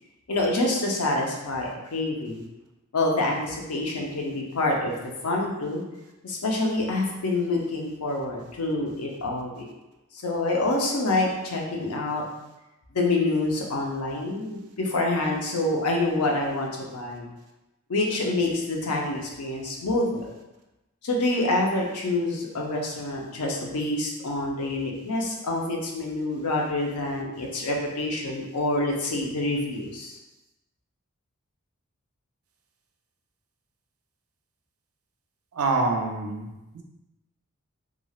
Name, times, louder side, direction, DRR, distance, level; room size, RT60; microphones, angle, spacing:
voice 1, 0.3-2.4 2.9-4.9 5.2-5.8 6.2-9.7 10.1-12.2 12.9-17.3 17.9-20.3 21.0-30.2, left 2 dB, 85° left, -1 dB, 0.6 m, -27 dB
voice 2, 35.5-36.8, right 3 dB, 75° right, 2 dB, 0.5 m, -26 dB
3.1 x 2.4 x 2.3 m, 1.0 s
head